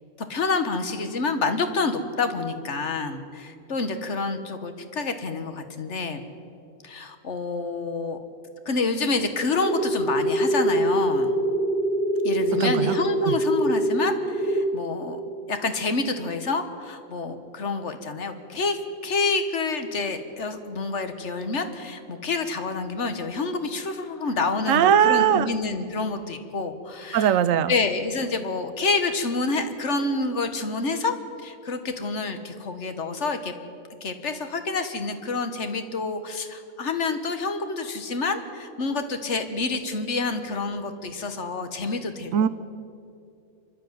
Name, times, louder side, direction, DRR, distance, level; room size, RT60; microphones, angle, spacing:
voice 1, 0.3-6.2 6.8-8.2 8.7-11.4 12.2-15.2 15.5-27.4 27.7-33.5 34.0-42.3, left 3 dB, 60° left, 8 dB, 1.7 m, -28 dB
sound 1, 9.6-14.6, right 1 dB, 5° left, 1.7 m, -24 dB
voice 2, 12.5-13.0 13.2-13.3 24.7-25.5 27.1-27.7 42.3-42.5, right 9 dB, 75° right, 14 dB, 1.1 m, -20 dB
25.0 x 11.5 x 9.3 m, 2.6 s
omnidirectional pair, 1.4 m